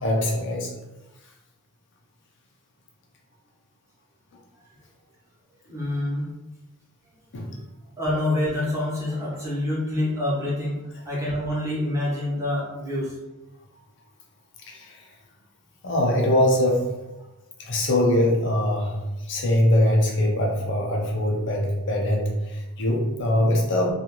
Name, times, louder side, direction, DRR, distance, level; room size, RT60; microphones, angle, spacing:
voice 1, 0.0-0.7 7.3-7.5 14.7-15.0 15.8-16.9 17.6-23.9, left 1 dB, 55° left, 0 dB, 0.6 m, -22 dB
voice 2, 5.7-6.3 7.4-7.6 8.0-10.8 11.0-13.2, left 1 dB, 15° right, -7 dB, 0.9 m, -26 dB
2.5 x 2.4 x 2.9 m, 1.0 s
head